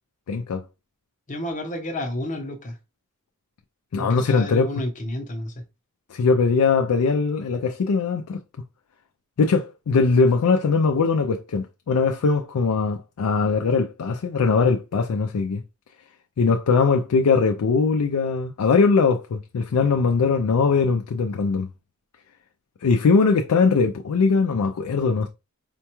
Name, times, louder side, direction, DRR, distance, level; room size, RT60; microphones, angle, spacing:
voice 1, 0.3-0.6 3.9-4.7 6.1-8.4 9.4-15.6 16.4-21.7 22.8-25.3, left 4 dB, 85° left, 0.4 m, -21 dB
voice 2, 1.3-2.8 4.0-5.5, left 1 dB, 35° left, 0.8 m, -30 dB
4.3 x 2.3 x 2.9 m
head